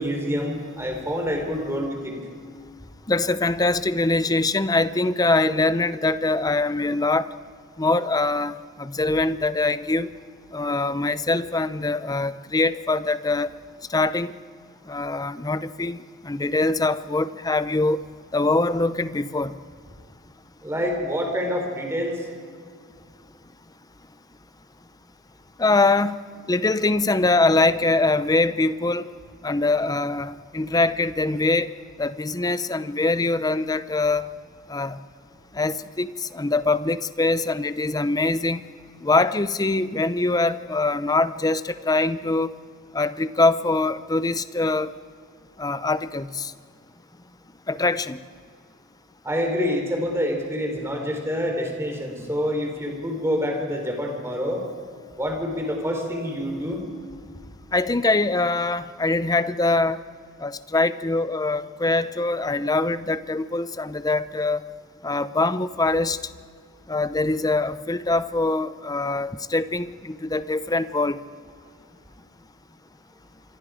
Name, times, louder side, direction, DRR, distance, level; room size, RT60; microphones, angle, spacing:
voice 1, 0.0-2.2 20.6-22.3 49.2-54.6 55.2-56.8, equal, 10° right, 3 dB, 4.0 m, -27 dB
voice 2, 3.1-7.3 7.8-10.1 10.5-13.5 13.9-14.3 14.9-16.0 16.2-18.0 18.3-19.5 25.6-26.2 26.5-29.1 29.4-31.7 32.0-34.3 34.7-35.0 35.5-38.7 39.0-42.5 42.9-44.9 45.6-46.5 47.7-48.2 57.7-60.0 60.4-64.6 65.0-66.2 66.9-71.2, left 2 dB, 15° left, 14 dB, 0.6 m, -23 dB
27.5 x 24.0 x 5.0 m, 2.1 s
head